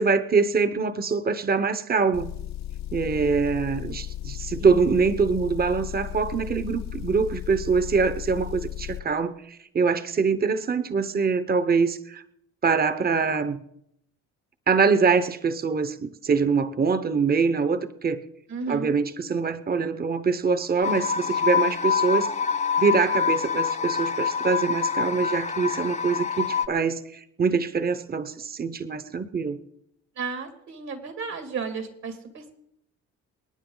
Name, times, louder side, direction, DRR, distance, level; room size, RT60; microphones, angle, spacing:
voice 1, 0.0-2.3 2.9-12.2 12.6-13.6 14.7-18.2 18.7-22.3 22.8-29.6, right 5 dB, 30° right, 13 dB, 1.0 m, -24 dB
Motor vehicle (road) / Engine, 2.1-9.0, left 13 dB, 60° left, 0.9 m, -35 dB
voice 2, 18.5-18.9 30.2-32.5, right 5 dB, 65° right, 6 dB, 2.5 m, -33 dB
sound 1, 20.8-26.7, left 6 dB, 25° left, 0.6 m, -26 dB
28.0 x 9.5 x 3.9 m, 0.75 s
cardioid pair, 90°, 30 cm